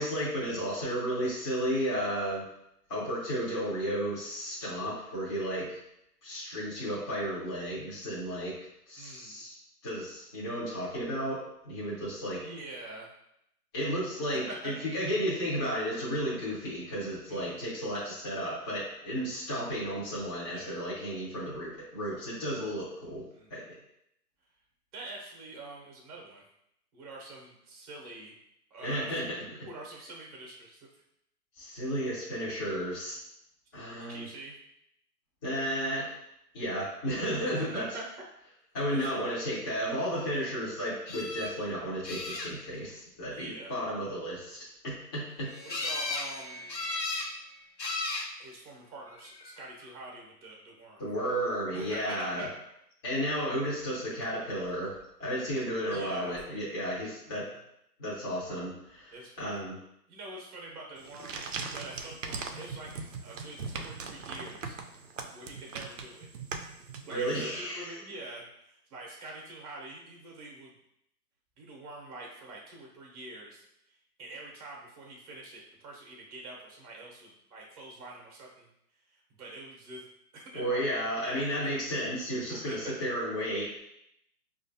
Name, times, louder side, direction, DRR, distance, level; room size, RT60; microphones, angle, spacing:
voice 1, 0.0-2.4 2.9-5.8 6.2-8.6 8.9-9.6 9.8-12.4 13.7-23.2 23.5-23.6 28.8-29.4 31.6-33.2 33.7-34.3 35.4-36.1 36.5-37.9 38.7-44.6 44.8-45.5 51.0-52.5 53.0-57.4 58.0-59.8 67.1-67.8 80.5-83.8, equal, 15° left, -9 dB, 0.7 m, -33 dB
voice 2, 9.0-9.4 12.4-13.1 14.5-14.7 17.3-17.7 20.5-20.8 23.3-23.5 24.9-26.4 26.9-28.3 28.7-29.3 29.6-31.0 33.9-34.5 37.4-38.1 38.9-39.4 40.3-40.6 43.2-43.7 45.6-46.9 48.4-51.0 51.7-52.5 55.9-56.7 57.3-57.6 59.1-59.6 60.1-61.4 61.6-64.8 65.3-66.3 67.0-70.7 71.6-78.7 79.1-80.0 80.3-81.8 82.5-83.0, right 2 dB, 25° right, -1 dB, 0.8 m, -45 dB
sound 1, 41.1-41.5 42.0-42.8 45.7-46.3 46.7-47.3 47.8-48.3 49.2-49.7 55.9-56.0 56.4-56.5, left 3 dB, 90° left, 0.9 m, -35 dB
sound 2, 45.3-48.6, equal, 60° left, 0.9 m, -48 dB
sound 3, 61.0-67.5, right 4 dB, 55° right, 0.5 m, -40 dB
5.0 x 2.4 x 2.6 m, 0.78 s
hypercardioid pair, 145°, 48 cm